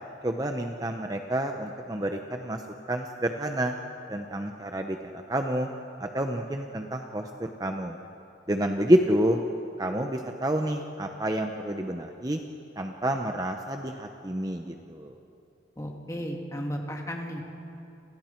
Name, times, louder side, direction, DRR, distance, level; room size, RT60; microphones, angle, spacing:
voice 1, 0.2-2.6 2.9-3.7 4.1-5.7 6.0-8.0 8.5-9.4 9.8-12.4 12.8-15.2, right 1 dB, 20° right, 4 dB, 0.8 m, -28 dB
voice 2, 15.8-17.4, equal, 15° left, 1 dB, 2.3 m, -34 dB
29.0 x 28.0 x 4.5 m, 2.8 s
head